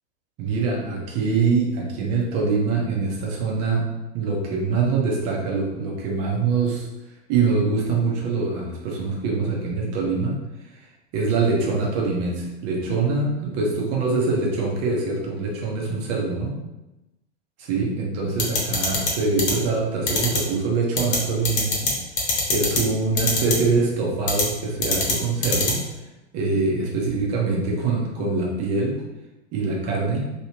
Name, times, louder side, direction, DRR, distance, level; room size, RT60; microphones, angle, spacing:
voice 1, 0.4-3.9 4.1-6.9 7.3-10.3 10.7-10.9 11.1-16.6 17.6-21.9 22.5-25.8 26.3-29.0 29.5-30.3, right 4 dB, 45° right, -2 dB, 1.1 m, -24 dB
sound 1, 18.4-19.1 19.4-19.5 20.1-20.4 21.0-21.2 21.5-21.9 22.2-22.8 23.2-23.5 24.3-24.4 24.8-25.1 25.4-25.7, left 4 dB, 40° left, 1.2 m, -21 dB
3.3 x 3.0 x 2.9 m, 1.0 s
hypercardioid pair, 95°, 36 cm